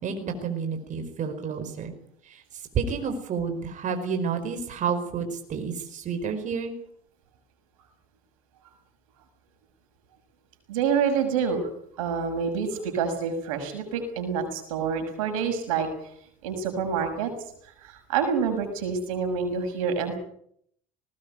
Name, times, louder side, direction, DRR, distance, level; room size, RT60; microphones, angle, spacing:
voice 1, 0.0-1.9 2.3-2.4 2.7-6.7, right 6 dB, 45° right, 6 dB, 4.8 m, -30 dB
voice 2, 10.7-11.6 12.0-16.1 16.4-17.3 17.8-20.2, right 6 dB, 85° right, 7 dB, 6.5 m, -27 dB
20.0 x 19.5 x 9.2 m, 0.69 s
supercardioid pair, 85°, 17 cm